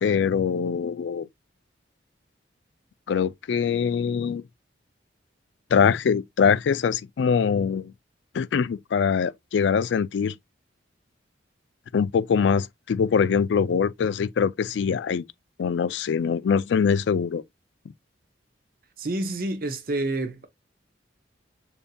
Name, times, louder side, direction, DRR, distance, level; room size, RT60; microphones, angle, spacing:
voice 1, 0.0-1.3 3.1-4.4 5.7-7.9 8.3-10.3 11.9-15.2 15.6-17.4, left 6 dB, 70° left, 0.3 m, -23 dB
voice 2, 19.0-20.5, right 2 dB, 50° right, 0.8 m, -28 dB
6.9 x 2.8 x 2.2 m
head